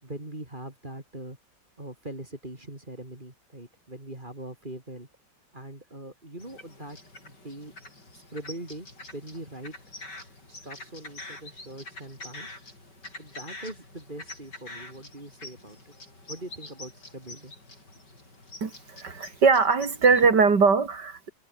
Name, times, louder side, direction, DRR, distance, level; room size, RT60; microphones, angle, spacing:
voice 1, 0.0-1.4 1.8-5.1 5.5-7.0 7.2-7.7 8.1-8.9 9.1-9.7 10.5-12.6 13.2-15.9 16.3-17.5, right 1 dB, 25° right, 5.2 m, -41 dB
sound 1, 6.4-20.3, left 2 dB, 65° left, 8.1 m, -46 dB
voice 2, 18.6-21.3, right 5 dB, 65° right, 3.3 m, -21 dB
omnidirectional pair, 2.0 m